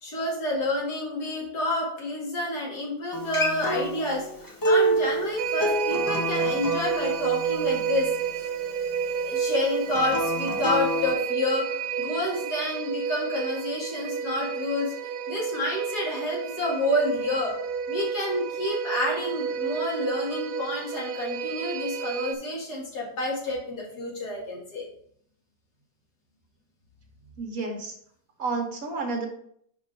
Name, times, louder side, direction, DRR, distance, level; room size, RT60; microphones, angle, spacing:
voice 1, 0.0-8.1 8.4-8.5 9.3-14.9 15.3-17.5 17.9-24.9, left 1 dB, 65° left, -3 dB, 2.6 m, -29 dB
Acoustic guitar, 3.1-8.3 9.9-11.1, right 1 dB, 15° left, 0.7 m, -28 dB
sound 1, 5.4-22.4, right 7 dB, 75° right, 1.2 m, -30 dB
voice 2, 27.4-27.9 28.4-29.3, right 3 dB, 55° right, 1 dB, 1.7 m, -30 dB
5.2 x 5.2 x 4.6 m, 0.65 s
omnidirectional pair, 1.8 m